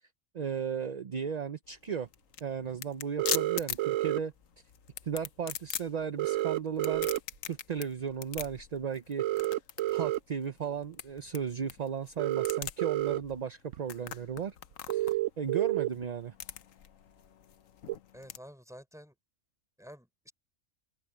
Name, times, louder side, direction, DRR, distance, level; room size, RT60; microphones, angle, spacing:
voice 1, 0.3-2.1 2.4-4.3 5.0-7.1 7.5-9.3 9.9-14.6 14.9-16.3, right 7 dB, 40° right, 0.6 m, -35 dB
sound 1, 1.7-18.4, left 9 dB, 85° left, 1.3 m, -42 dB
sound 2, 3.2-4.2 6.2-7.2 9.2-10.2 12.2-13.2 13.7-13.8 14.9-15.9 17.9-18.0, right 15 dB, 75° right, 1.0 m, -29 dB
voice 2, 18.1-19.1 19.8-20.3, equal, ahead, 4.1 m, -50 dB
open air
omnidirectional pair, 1.3 m